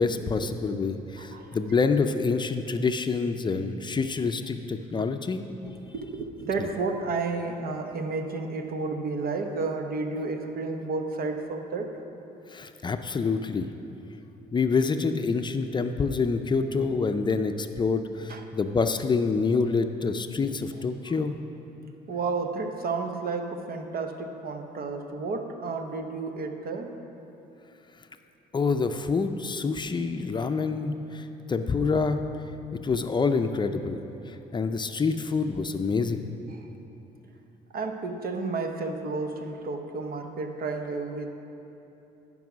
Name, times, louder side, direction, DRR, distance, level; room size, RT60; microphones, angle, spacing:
voice 1, 0.0-5.5 12.5-13.7 14.5-21.3 28.5-32.2 32.8-34.0 34.3-36.3, left 4 dB, 30° left, 7 dB, 0.5 m, -27 dB
voice 2, 1.2-1.5 5.9-11.9 18.3-18.5 20.7-21.2 22.1-26.9 36.5-36.7 37.7-41.3, right 3 dB, 65° right, 5 dB, 1.0 m, -32 dB
14.5 x 5.4 x 6.1 m, 2.9 s
cardioid pair, 90°, 16 cm